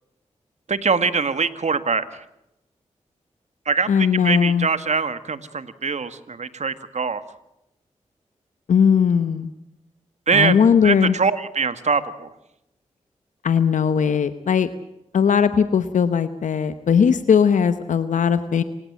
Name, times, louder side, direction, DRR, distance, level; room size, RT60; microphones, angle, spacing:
voice 1, 0.7-2.2 3.7-7.2 10.3-10.6 10.8-12.3, right 5 dB, 65° right, 12 dB, 1.9 m, -23 dB
voice 2, 3.9-4.7 8.7-9.5 10.3-11.2 13.4-14.7 15.1-18.6, left 7 dB, 85° left, 11 dB, 1.0 m, -18 dB
27.5 x 16.5 x 7.5 m, 0.87 s
cardioid pair, 50°, 13 cm